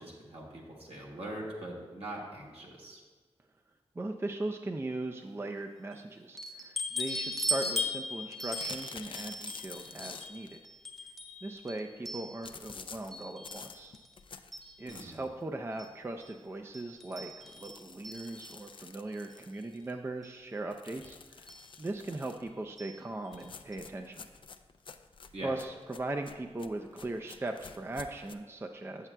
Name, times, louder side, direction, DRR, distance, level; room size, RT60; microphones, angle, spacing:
voice 1, 0.0-3.0 14.9-15.2 25.3-25.5, right 1 dB, 70° right, -4 dB, 1.6 m, -42 dB
voice 2, 4.0-10.6 11.4-13.9 14.8-21.5 21.8-24.3 25.4-29.1, right 2 dB, 25° right, 4 dB, 0.4 m, -39 dB
sound 1, 6.4-12.7 13.1-14.1 14.5-15.1 15.8-15.9 16.2-16.3 16.7-18.7 19.7-19.8 20.2-20.3 21.5-21.7 22.8-23.0 23.3-23.4 23.7-23.8, left 1 dB, ahead, 0.7 m, -39 dB
sound 2, 8.5-10.5 12.4-15.3 15.8-15.9 16.2-16.3 16.6-16.7 17.4-19.9 20.7-22.5 23.3-28.3, left 5 dB, 50° left, 0.4 m, -49 dB
8.0 x 7.3 x 2.2 m, 1.4 s
cardioid pair, 50°, 11 cm